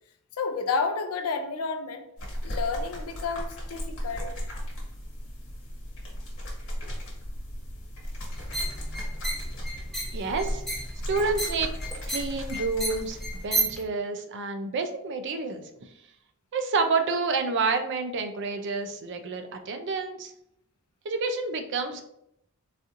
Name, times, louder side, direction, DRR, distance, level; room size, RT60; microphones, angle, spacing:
voice 1, 0.4-2.0 2.4-4.3, left 4 dB, 75° left, 7 dB, 0.5 m, -30 dB
sound 1, 2.2-13.5, equal, 60° left, 1.3 m, -36 dB
sound 2, 8.3-13.8, right 1 dB, ahead, 0.6 m, -33 dB
voice 2, 10.1-10.6 11.1-11.7 12.1-13.2 13.4-15.6 16.5-20.3 21.0-22.0, right 4 dB, 55° right, 7 dB, 0.4 m, -29 dB
4.1 x 2.6 x 2.5 m, 0.75 s
head